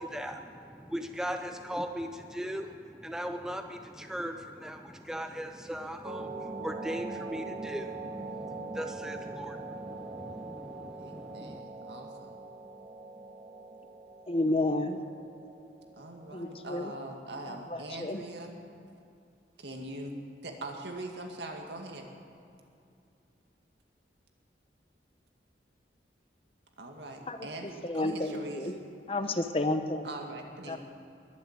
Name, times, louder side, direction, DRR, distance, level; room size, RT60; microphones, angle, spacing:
voice 1, 0.0-11.6, equal, 5° right, 5 dB, 0.5 m, -39 dB
sound 1, 6.0-17.5, right 3 dB, 25° right, 1.1 m, -43 dB
voice 2, 10.9-12.4 15.9-18.6 19.6-22.1 26.8-28.7 30.0-30.8, right 1 dB, 70° right, 2 dB, 2.1 m, -42 dB
voice 3, 14.3-15.0 16.3-16.9 17.5-18.2 27.3-28.8 29.1-30.1 30.7-30.8, left 2 dB, 30° left, 8 dB, 0.8 m, -31 dB
22.0 x 7.3 x 8.8 m, 2.5 s
head